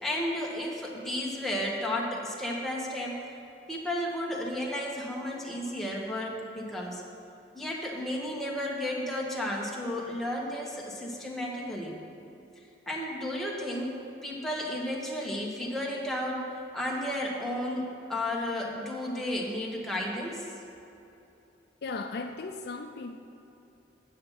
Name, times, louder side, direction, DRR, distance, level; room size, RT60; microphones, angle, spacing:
voice 1, 0.0-3.2 3.7-7.0 7.5-12.0 12.9-16.4 16.7-20.5, left 1 dB, ahead, -3 dB, 1.1 m, -33 dB
voice 2, 21.8-23.2, left 3 dB, 60° left, 6 dB, 0.4 m, -36 dB
8.6 x 7.0 x 5.4 m, 2.8 s
head